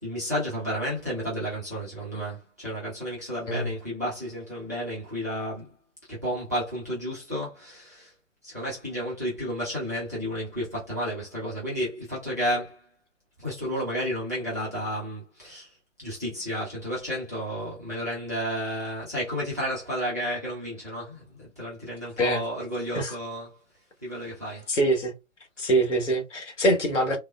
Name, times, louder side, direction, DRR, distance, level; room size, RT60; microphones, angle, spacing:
voice 1, 0.0-5.7 6.1-8.1 8.4-12.9 13.4-23.6 24.0-24.7, equal, 15° right, 0.4 m, -32 dB
voice 2, 24.7-25.1 25.6-27.2, right 1 dB, 65° left, 1.1 m, -24 dB
3.4 x 2.0 x 2.2 m
figure-of-eight pair, 130°, 40 cm